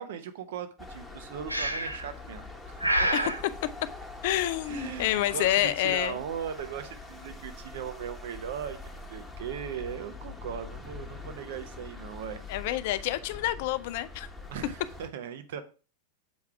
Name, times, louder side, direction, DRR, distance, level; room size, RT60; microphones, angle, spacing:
voice 1, 0.0-3.1 4.6-12.4 14.5-15.6, right 8 dB, 55° right, 0.9 m, -38 dB
sound 1, 0.8-15.1, left 3 dB, 5° left, 1.2 m, -44 dB
Breathing, 1.5-2.1 2.8-3.4, right 1 dB, 85° right, 0.7 m, -27 dB
voice 2, 4.2-6.2 12.5-14.3, left 14 dB, 50° left, 0.5 m, -28 dB
7.3 x 4.8 x 4.6 m
figure-of-eight pair, 90°, 0 cm